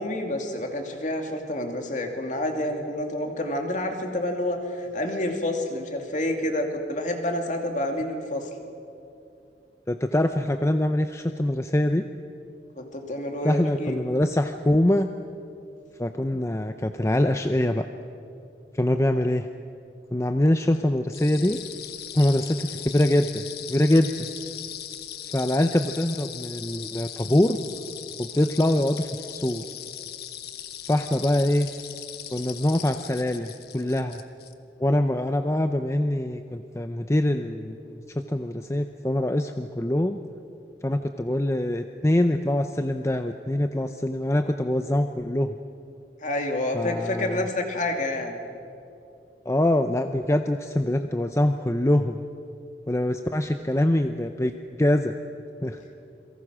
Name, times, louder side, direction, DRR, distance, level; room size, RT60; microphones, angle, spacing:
voice 1, 0.0-8.5 12.8-14.1 46.2-48.4, left 1 dB, 45° left, 3 dB, 2.6 m, -28 dB
voice 2, 9.9-12.0 13.4-15.1 16.0-17.9 18.8-19.5 20.1-21.6 22.1-24.3 25.2-27.6 28.2-29.6 30.9-31.7 32.3-34.2 34.8-40.2 40.8-45.5 46.7-47.5 49.5-52.2 52.9-54.5 54.8-55.1 55.6-55.8, left 1 dB, 15° left, 7 dB, 0.6 m, -24 dB
sound 1, 21.1-34.5, left 11 dB, 60° left, 1.2 m, -39 dB
28.5 x 23.0 x 6.2 m, 2.7 s
head